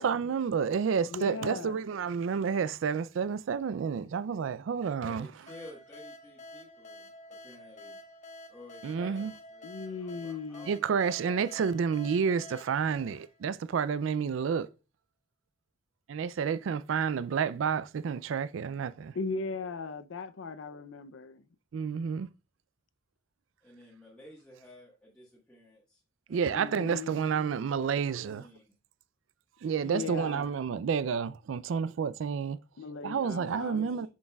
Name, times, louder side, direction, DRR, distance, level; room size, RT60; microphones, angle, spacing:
voice 1, 0.0-5.3 8.8-9.3 10.7-14.7 16.1-19.1 21.7-22.3 26.3-28.4 29.6-32.6 33.0-34.1, right 6 dB, 70° right, 0.4 m, -30 dB
voice 2, 1.1-1.8 9.6-10.7 19.1-21.4 26.5-27.2 29.8-30.5 32.8-33.9, left 4 dB, 70° left, 0.5 m, -38 dB
voice 3, 5.0-8.0 8.5-11.6 23.6-26.0 26.3-26.9 27.8-28.6 33.0-34.1, left 1 dB, 5° left, 1.4 m, -53 dB
sound 1, 5.5-13.9, left 1 dB, 40° left, 1.2 m, -49 dB
7.2 x 6.4 x 2.3 m
head